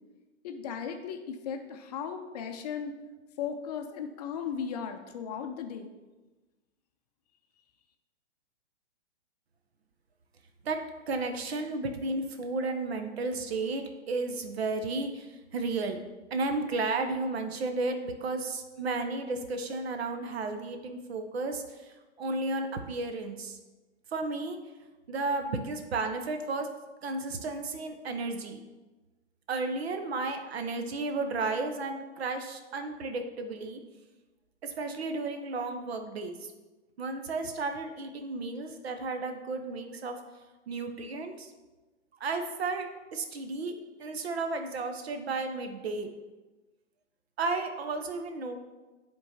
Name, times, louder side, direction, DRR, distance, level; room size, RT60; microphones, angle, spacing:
voice 1, 0.4-2.9 3.4-6.0, left 7 dB, 35° left, 6 dB, 0.5 m, -36 dB
voice 2, 10.6-16.0 16.3-23.6 24.1-24.6 25.1-26.7 27.0-28.6 29.5-33.8 34.6-36.5 37.0-40.2 40.7-41.5 42.2-43.7 44.0-46.1 47.4-48.6, right 3 dB, 60° right, 6 dB, 0.7 m, -33 dB
9.3 x 3.7 x 2.8 m, 1.2 s
figure-of-eight pair, 120°, 36 cm